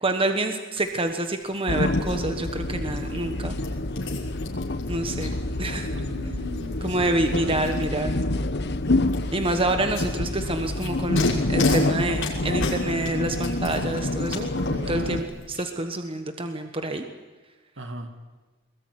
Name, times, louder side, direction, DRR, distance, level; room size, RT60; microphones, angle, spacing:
voice 1, 0.0-3.6 4.9-5.9 6.8-8.1 9.3-14.5 14.9-17.0, right 2 dB, 25° right, 6 dB, 1.3 m, -27 dB
sound 1, 0.8-15.6, left 5 dB, 70° left, 6.2 m, -40 dB
sound 2, 1.7-15.2, left 2 dB, 55° left, 1.2 m, -27 dB
voice 2, 5.9-8.2 14.6-15.4 17.8-18.1, right 1 dB, 65° right, 6 dB, 2.5 m, -38 dB
23.0 x 21.5 x 9.8 m, 1.2 s
head